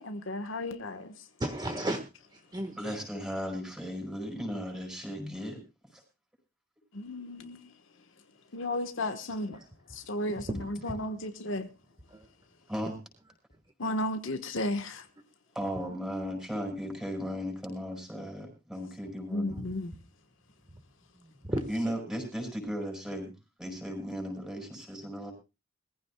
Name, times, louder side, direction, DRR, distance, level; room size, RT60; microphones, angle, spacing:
voice 1, 0.0-1.3 6.9-8.1 8.5-9.6 9.9-11.7 13.8-15.1 19.2-19.9, left 1 dB, 70° left, 1.3 m, -34 dB
voice 2, 1.4-2.0 2.3-2.9 12.1-12.2 21.2-21.9, right 1 dB, 20° right, 1.4 m, -34 dB
voice 3, 2.7-5.6 5.9-6.0 12.7-12.9 15.5-19.6 21.7-23.3 23.6-25.3, equal, 5° right, 5.4 m, -36 dB
22.0 x 15.0 x 2.3 m
head